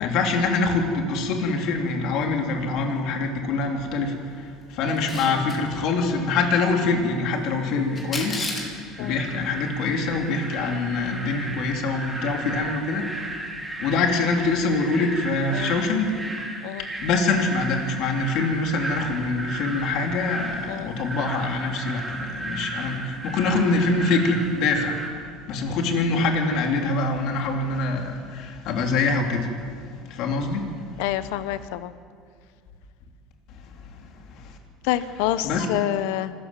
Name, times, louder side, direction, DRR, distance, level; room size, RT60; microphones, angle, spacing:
voice 1, 0.0-13.3 13.8-16.2 17.0-25.0 25.5-29.5 30.0-31.0 34.3-34.6 35.4-35.7, left 3 dB, 60° left, 2 dB, 3.5 m, -25 dB
Camera, 4.9-5.6 7.9-8.7, left 3 dB, 30° left, 4.8 m, -31 dB
sound 1, 7.7-25.1, right 1 dB, 10° right, 4.9 m, -35 dB
voice 2, 31.0-31.9 34.9-36.3, left 13 dB, 80° left, 13 dB, 1.0 m, -27 dB
25.5 x 14.0 x 7.5 m, 2.2 s
supercardioid pair, 105°, 0 cm